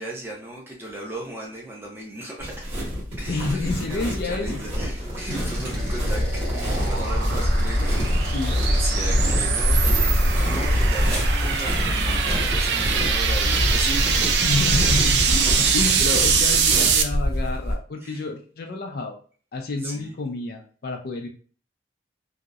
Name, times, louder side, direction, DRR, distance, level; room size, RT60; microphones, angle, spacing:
voice 1, 0.0-2.6 3.2-8.3 8.6-14.4 15.6-15.9 16.2-16.7 18.0-18.2 19.7-20.1, right 1 dB, 10° right, -2 dB, 0.5 m, -36 dB
sound 1, 2.4-17.7, equal, 35° right, 1.3 m, -24 dB
voice 2, 3.3-4.6 5.3-5.5 8.2-8.6 14.4-19.2 19.5-21.3, left 3 dB, 55° left, 4 dB, 0.4 m, -29 dB
sound 2, 4.9-16.6, equal, 90° right, 1.3 m, -39 dB
sound 3, 5.7-17.0, right 6 dB, 70° right, 0.3 m, -24 dB
2.6 x 2.0 x 2.3 m, 0.41 s
head